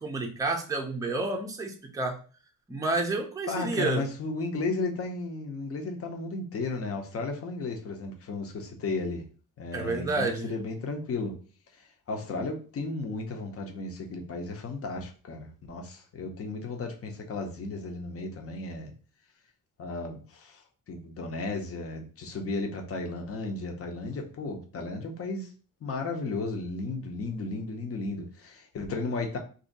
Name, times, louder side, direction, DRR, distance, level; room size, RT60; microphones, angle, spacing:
voice 1, 0.0-2.2 2.7-4.1 9.7-10.6, right 3 dB, 10° right, 2 dB, 0.5 m, -30 dB
voice 2, 3.5-9.2 9.6-11.4 12.1-18.9 19.8-20.6 20.9-25.5 25.8-29.4, left 3 dB, 45° left, 3 dB, 0.7 m, -34 dB
2.7 x 2.7 x 3.9 m, 0.38 s
wide cardioid pair, 145°, 32 cm